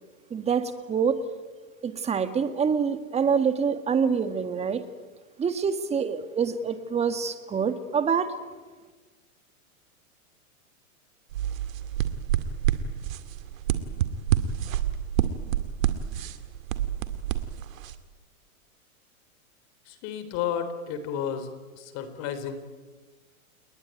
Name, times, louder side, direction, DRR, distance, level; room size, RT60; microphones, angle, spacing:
voice 1, 0.3-1.2 1.8-4.8 5.4-8.3, right 6 dB, 15° right, 10 dB, 1.8 m, -26 dB
sound 1, 11.3-17.9, right 11 dB, 65° right, 2.3 m, -28 dB
voice 2, 19.9-21.5 21.8-22.6, left 8 dB, 35° left, 10 dB, 3.8 m, -32 dB
30.0 x 20.0 x 9.2 m, 1.3 s
hypercardioid pair, 135°, 43 cm